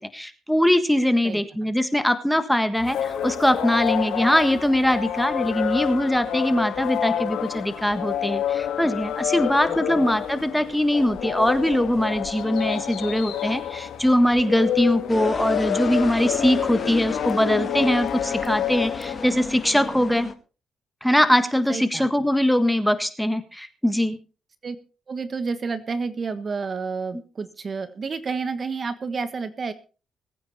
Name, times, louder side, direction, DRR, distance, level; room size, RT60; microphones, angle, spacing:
voice 1, 0.0-20.3 21.0-24.2, left 1 dB, 5° left, 10 dB, 1.6 m, -22 dB
sound 1, 2.8-19.8, left 10 dB, 80° left, 1.7 m, -28 dB
voice 2, 9.7-10.0 21.7-22.1 24.6-24.8 25.1-29.7, right 4 dB, 40° right, 12 dB, 1.4 m, -30 dB
sound 2, 15.1-20.3, left 4 dB, 30° left, 1.8 m, -34 dB
21.0 x 9.2 x 4.2 m, 0.36 s
cardioid pair, 90°, 0 cm